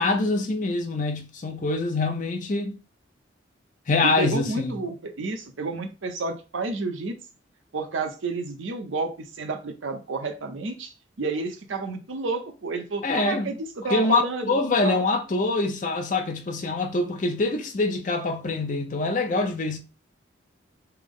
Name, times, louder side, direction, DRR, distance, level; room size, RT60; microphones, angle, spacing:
voice 1, 0.0-2.8 3.9-4.8 13.0-13.5 13.9-19.8, left 3 dB, 40° left, 0.5 m, -25 dB
voice 2, 4.0-7.2 7.7-10.9 11.2-14.6 14.8-15.0, right 3 dB, 80° right, 0.6 m, -30 dB
3.4 x 2.0 x 3.6 m
head